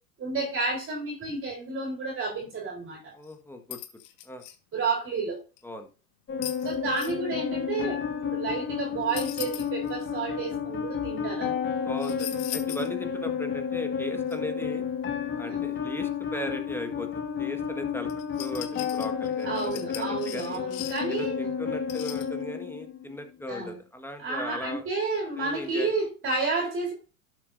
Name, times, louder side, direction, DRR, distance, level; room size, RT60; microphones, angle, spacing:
voice 1, 0.2-3.1 4.7-5.4 6.6-11.5 15.5-15.6 19.4-21.3 23.5-23.7 24.2-26.9, right 3 dB, 30° right, 3.6 m, -31 dB
voice 2, 3.1-3.8 4.2-4.4 5.6-5.9 11.8-14.8 15.4-17.1 17.4-18.1 18.4-20.6 21.1-24.8 25.4-25.9, left 1 dB, 5° left, 1.4 m, -38 dB
sound 1, 3.2-3.3 3.7-4.5 5.6-5.7 6.4-7.1 9.1-10.0 12.0-12.9 13.3-13.4 14.3-14.4 18.1-21.2 21.9-22.3, left 13 dB, 55° left, 1.6 m, -39 dB
sound 2, 6.3-23.3, left 7 dB, 25° left, 1.7 m, -31 dB
12.0 x 7.3 x 2.6 m
hypercardioid pair, 110°, 44 cm